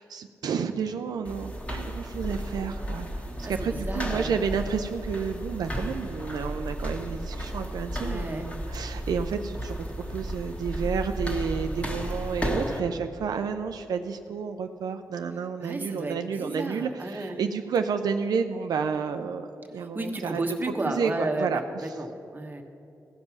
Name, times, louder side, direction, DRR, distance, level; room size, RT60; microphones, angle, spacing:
voice 1, 0.0-9.8 10.1-20.4 20.8-21.9, right 6 dB, 80° right, 6 dB, 0.4 m, -31 dB
sound 1, 1.3-12.8, equal, 20° left, 1.5 m, -33 dB
voice 2, 3.4-4.3 8.0-8.5 15.6-17.4 19.7-22.6, right 2 dB, 25° right, 3 dB, 1.1 m, -33 dB
16.0 x 5.4 x 6.0 m, 2.7 s
cardioid pair, 75°, 7 cm